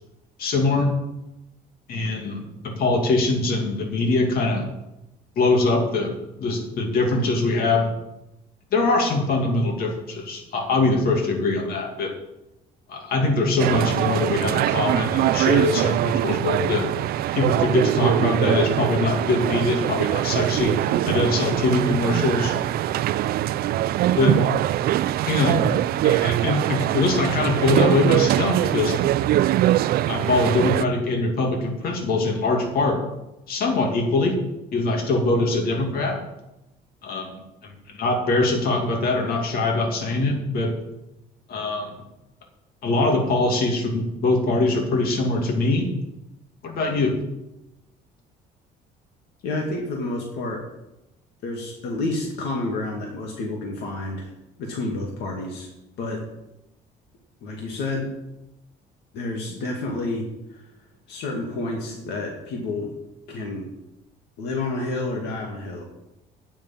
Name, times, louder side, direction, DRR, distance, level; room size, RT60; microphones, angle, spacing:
voice 1, 0.4-0.9 1.9-4.7 5.4-7.9 8.7-12.1 12.9-16.9 17.3-22.5 23.2-23.3 24.2-24.4 25.3-25.7 26.0-29.0 30.1-33.0 33.5-34.4 34.7-36.3 37.0-40.7 41.5-42.0 42.8-45.9 46.6-47.2, left 2 dB, 65° left, 1 dB, 2.5 m, -23 dB
sound 1, 13.6-30.8, right 13 dB, 65° right, 0.4 m, -22 dB
voice 2, 49.4-50.6 51.4-54.3 54.6-55.7 56.0-56.2 57.4-58.1 59.1-60.6 61.1-62.9 63.3-63.7 64.4-65.8, left 2 dB, 80° left, 0 dB, 2.3 m, -29 dB
9.3 x 7.1 x 8.8 m, 0.92 s
cardioid pair, 110°, 17 cm